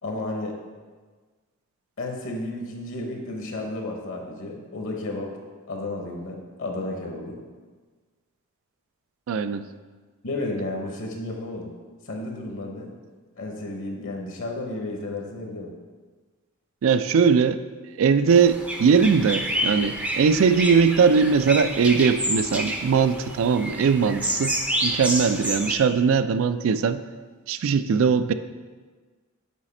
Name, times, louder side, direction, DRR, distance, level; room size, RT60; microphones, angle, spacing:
voice 1, 0.0-0.5 2.0-5.3 5.7-7.4 10.2-11.7 12.0-12.9 13.4-15.7, left 2 dB, 60° left, 1 dB, 0.9 m, -32 dB
voice 2, 9.3-9.6 16.8-17.6 18.0-24.6 24.8-27.0 27.5-28.3, right 5 dB, 65° right, 12 dB, 0.3 m, -20 dB
sound 1, 18.3-25.8, equal, 5° right, 0.5 m, -29 dB
7.3 x 4.2 x 4.3 m, 1.4 s
head